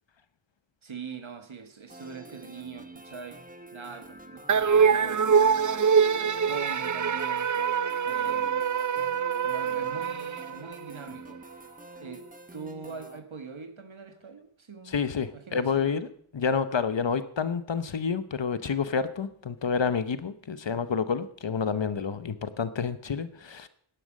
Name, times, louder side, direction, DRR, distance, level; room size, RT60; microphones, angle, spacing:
voice 1, 0.8-3.4 3.7-5.6 5.9-7.5 8.0-8.5 9.4-11.4 12.0-12.2 12.5-16.0, right 5 dB, 75° right, 8 dB, 1.6 m, -43 dB
sound 1, 1.9-13.2, right 2 dB, 15° right, 0.9 m, -47 dB
sound 2, 4.5-11.0, right 6 dB, 40° right, 0.5 m, -24 dB
voice 2, 14.9-16.1 16.3-23.7, left 6 dB, 65° left, 13 dB, 0.9 m, -29 dB
11.0 x 10.0 x 6.4 m, 0.62 s
wide cardioid pair, 65°, 48 cm